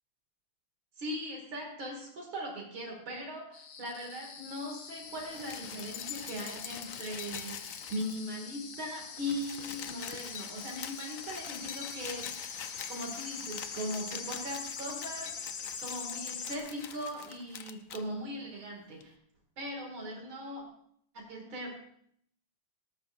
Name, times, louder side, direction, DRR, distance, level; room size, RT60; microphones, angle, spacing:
voice 1, 1.0-12.6 12.9-19.1 19.6-20.6 21.1-21.8, equal, 75° right, 0 dB, 3.0 m, -39 dB
sound 1, 3.5-16.6, left 6 dB, 55° left, 1.4 m, -44 dB
sound 2, 5.1-8.4 8.7-8.8 9.0-18.0 19.0-19.1, left 9 dB, 70° left, 0.8 m, -44 dB
18.0 x 13.0 x 2.5 m, 0.68 s
omnidirectional pair, 2.3 m